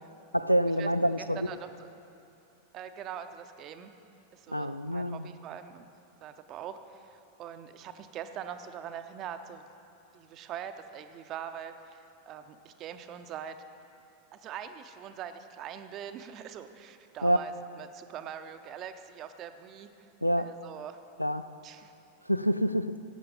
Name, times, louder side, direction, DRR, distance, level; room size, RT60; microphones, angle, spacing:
voice 1, 0.3-1.5 4.5-5.3 17.2-17.4 20.2-20.5 21.2-21.5 22.3-23.0, equal, 90° left, 12 dB, 0.3 m, -27 dB
voice 2, 1.2-1.7 2.7-3.9 4.3-5.9 6.2-9.6 10.1-13.6 14.3-20.1 20.4-21.0 21.6-21.9, right 9 dB, 35° right, 9 dB, 0.6 m, -43 dB
15.5 x 8.4 x 5.3 m, 2.7 s
figure-of-eight pair, 90°, 0 cm